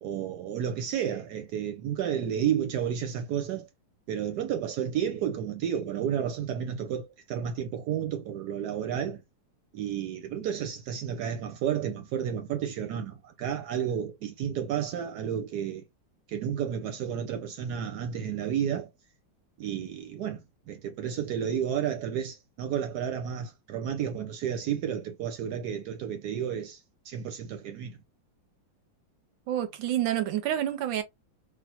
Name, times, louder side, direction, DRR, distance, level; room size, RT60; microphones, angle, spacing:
voice 1, 0.0-3.7 4.1-9.2 9.7-15.8 16.3-18.9 19.6-28.0, right 9 dB, 70° right, 1.0 m, -31 dB
voice 2, 29.5-31.0, right 11 dB, 85° right, 1.3 m, -28 dB
3.3 x 2.3 x 2.7 m
omnidirectional pair, 2.0 m